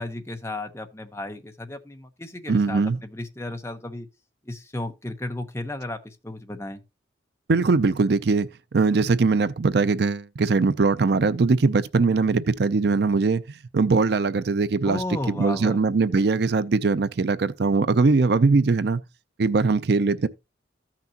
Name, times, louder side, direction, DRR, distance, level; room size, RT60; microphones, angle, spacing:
voice 1, 0.0-4.1 4.4-6.8 14.8-15.8, left 1 dB, 15° left, 0.9 m, -34 dB
voice 2, 2.5-3.0 7.5-8.5 8.7-19.0 19.4-20.3, right 4 dB, 60° right, 0.5 m, -21 dB
14.5 x 6.0 x 2.8 m
head